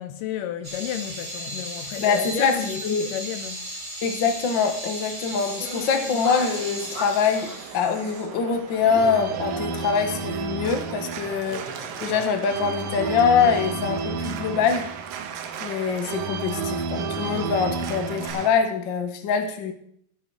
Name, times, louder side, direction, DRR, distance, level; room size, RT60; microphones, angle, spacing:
voice 1, 0.0-3.7, left 11 dB, 75° left, 2.2 m, -32 dB
sound 1, 0.6-9.2 9.5-9.6 10.1-10.8 11.1-13.5 13.9-14.1 16.6-16.7 17.0-18.3, equal, 10° right, 6.1 m, -36 dB
voice 2, 2.0-3.1 4.0-11.7 12.0-14.9 15.6-19.7, left 6 dB, 55° left, 1.3 m, -24 dB
Organ, 5.3-18.5, right 5 dB, 75° right, 2.8 m, -32 dB
16.0 x 13.5 x 4.8 m
omnidirectional pair, 4.2 m